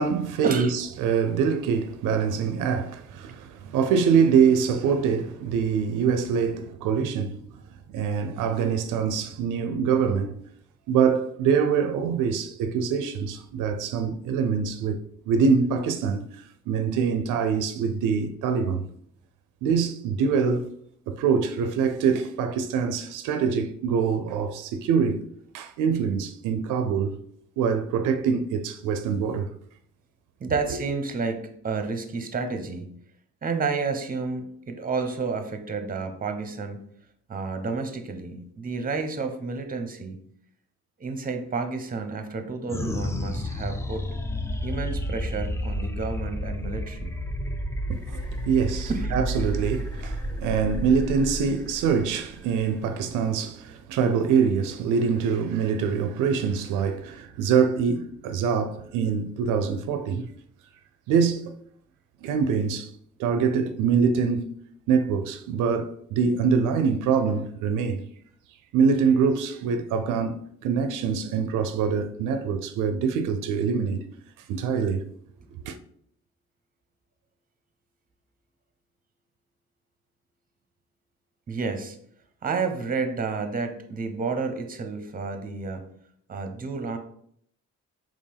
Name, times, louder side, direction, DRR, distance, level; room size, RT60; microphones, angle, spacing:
voice 1, 0.0-7.4 7.9-10.4 10.9-15.0 15.3-16.2 16.7-18.9 19.6-20.7 21.1-25.2 25.5-27.2 27.6-29.5 47.9-60.3 61.1-61.5 62.2-62.9 63.2-64.5 64.9-68.1 68.7-74.0 74.5-75.0 75.6-75.8, right 6 dB, 90° right, 0.5 m, -24 dB
voice 2, 30.4-32.9 33.4-36.8 37.3-40.2 41.0-44.0 44.6-47.1 48.9-49.2 50.3-50.4 81.5-82.0 82.4-85.8 86.3-87.0, right 4 dB, 30° right, 0.7 m, -30 dB
sound 1, 42.7-53.4, equal, 10° left, 0.4 m, -31 dB
4.4 x 3.0 x 3.4 m
cardioid pair, 90°, 30 cm